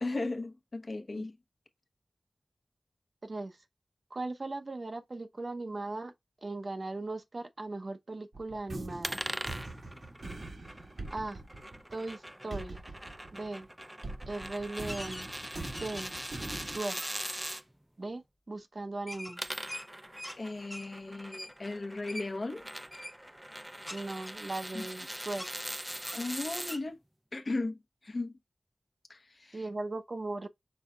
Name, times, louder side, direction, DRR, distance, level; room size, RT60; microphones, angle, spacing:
voice 1, 0.0-1.4 20.4-22.7 24.7-24.9 26.1-27.0 27.3-28.4 29.1-29.7, left 2 dB, 60° left, 0.8 m, -36 dB
voice 2, 3.2-3.6 4.1-6.1 6.4-9.2 11.1-11.4 11.9-12.8 13.3-13.7 14.3-15.2 15.8-16.1 16.6-17.0 18.0-18.2 18.5-19.4 23.9-25.4 29.5-30.5, right 2 dB, 55° right, 0.8 m, -38 dB
sound 1, 8.3-13.7 14.0-16.8, right 2 dB, 75° right, 1.4 m, -43 dB
sound 2, 9.0-17.6 19.1-26.8, right 1 dB, 10° right, 0.4 m, -42 dB
sound 3, 14.9-15.3 15.7-16.2 16.7-17.3 19.1-20.4 20.7-20.9 21.3-21.5 22.1-22.3 22.9-23.2 23.9-25.0 25.3-25.5 26.0-26.3 26.7-26.8, left 1 dB, 20° left, 0.9 m, -44 dB
5.5 x 3.6 x 2.3 m
wide cardioid pair, 55°, 0 cm